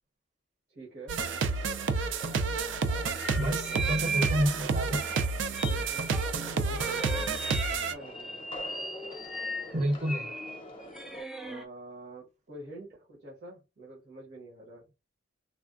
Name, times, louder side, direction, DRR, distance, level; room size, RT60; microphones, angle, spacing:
voice 1, 0.7-1.2 3.3-3.9 5.5-8.4 11.4-14.9, right 1 dB, 65° right, 1.1 m, -47 dB
sound 1, 1.1-7.9, right 4 dB, 80° right, 0.4 m, -30 dB
sound 2, 1.2-11.2, left 1 dB, 30° left, 0.7 m, -47 dB
sound 3, 3.0-4.5 4.7-6.3 6.7-11.6, right 2 dB, 5° right, 0.3 m, -37 dB
voice 2, 3.4-5.0 9.7-10.3, equal, 40° right, 0.7 m, -29 dB
3.4 x 2.1 x 2.4 m
head